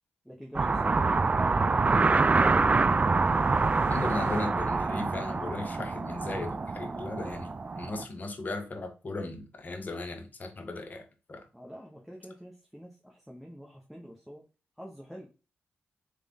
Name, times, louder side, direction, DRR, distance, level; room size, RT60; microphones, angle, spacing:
voice 1, 0.2-2.5 11.5-14.4 14.8-15.3, equal, ahead, 1.1 m, -46 dB
sound 1, 0.5-8.0, right 3 dB, 35° right, 0.3 m, -26 dB
sound 2, 2.2-5.0, left 5 dB, 70° left, 0.6 m, -45 dB
voice 2, 3.9-11.0 11.3-11.4, left 2 dB, 45° left, 1.2 m, -37 dB
3.4 x 3.4 x 3.7 m
cardioid pair, 55°, 4 cm